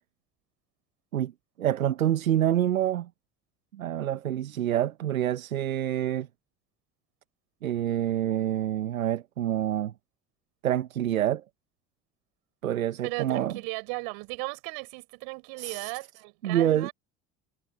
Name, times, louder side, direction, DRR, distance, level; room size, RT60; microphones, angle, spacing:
voice 1, 1.6-3.1 3.7-6.3 7.6-9.9 10.6-11.4 12.6-13.5 15.6-15.9 16.4-16.9, right 11 dB, 90° right, 1.0 m, -27 dB
voice 2, 13.0-16.9, right 33 dB, 70° right, 6.8 m, -36 dB
hypercardioid pair, 60°, 40 cm